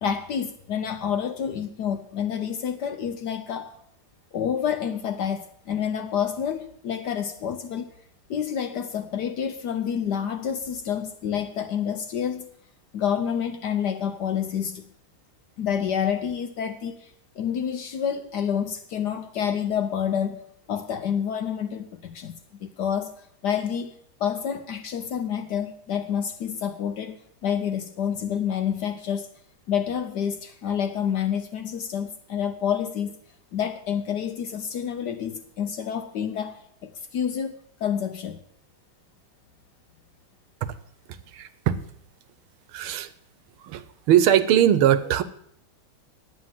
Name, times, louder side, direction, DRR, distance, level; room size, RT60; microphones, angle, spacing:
voice 1, 0.0-3.7 4.3-7.9 8.3-12.5 12.9-14.9 15.6-20.4 20.7-29.3 29.7-33.1 33.5-38.4, left 8 dB, 65° left, 1.1 m, -28 dB
voice 2, 41.3-41.8 42.7-43.1 43.6-43.8 44.1-45.2, right 10 dB, 80° right, 1.6 m, -20 dB
10.5 x 8.9 x 7.5 m
omnidirectional pair, 2.3 m